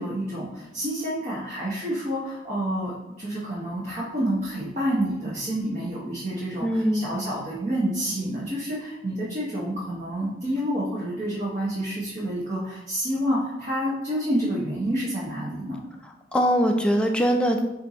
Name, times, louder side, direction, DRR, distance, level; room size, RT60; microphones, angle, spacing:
voice 1, 0.0-15.8, equal, 40° right, -7 dB, 0.9 m, -28 dB
voice 2, 6.6-7.1 16.3-17.6, equal, 5° left, 2 dB, 0.3 m, -22 dB
4.3 x 2.6 x 4.1 m, 0.95 s
head